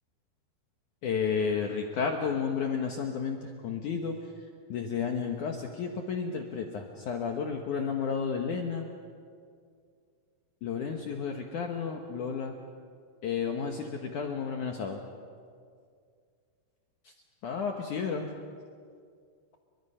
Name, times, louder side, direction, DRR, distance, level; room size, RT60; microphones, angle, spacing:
voice 1, 1.0-4.1 4.7-8.9 10.6-12.5 13.2-15.0 17.4-18.3, left 6 dB, 65° left, 3 dB, 2.2 m, -32 dB
29.5 x 24.0 x 5.6 m, 2.2 s
omnidirectional pair, 4.9 m